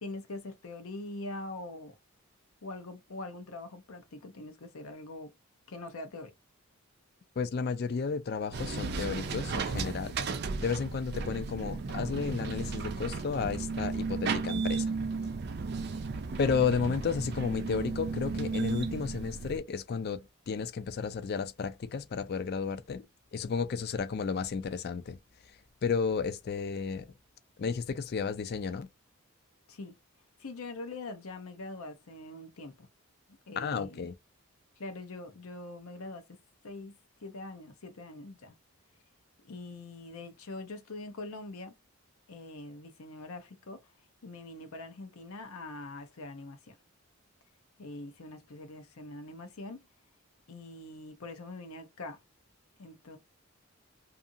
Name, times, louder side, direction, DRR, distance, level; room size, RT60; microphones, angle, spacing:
voice 1, 0.0-1.9 2.6-5.3 5.7-6.3 29.7-30.0 30.4-32.9 33.5-34.1 34.8-36.2 36.6-38.6 39.4-41.7 42.3-43.8 44.2-46.8 47.8-49.9 50.5-52.2 52.8-53.2, left 2 dB, 75° left, 0.7 m, -43 dB
voice 2, 7.4-10.2 10.6-14.9 16.4-23.0 23.3-25.2 25.8-27.1 27.6-28.9 33.6-34.1, left 5 dB, 45° left, 0.3 m, -32 dB
sound 1, 8.5-19.6, right 4 dB, 45° right, 0.4 m, -34 dB
2.7 x 2.5 x 2.5 m
head